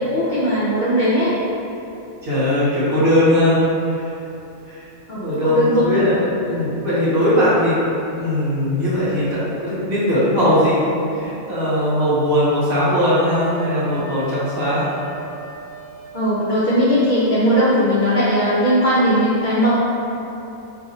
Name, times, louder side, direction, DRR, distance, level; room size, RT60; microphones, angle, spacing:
voice 1, 0.0-1.3 5.1-6.1 16.1-19.7, equal, 55° left, -9 dB, 0.5 m, -18 dB
voice 2, 2.2-3.6 3.9-4.1 4.7-4.8 5.2-6.2 6.4-7.8 8.1-10.8 11.1-14.8, equal, 50° right, -10 dB, 1.1 m, -19 dB
Wind instrument woodwind instrument, 13.0-16.2, right 3 dB, 15° right, 0.9 m, -37 dB
4.4 x 2.4 x 2.7 m, 2.9 s
omnidirectional pair, 1.3 m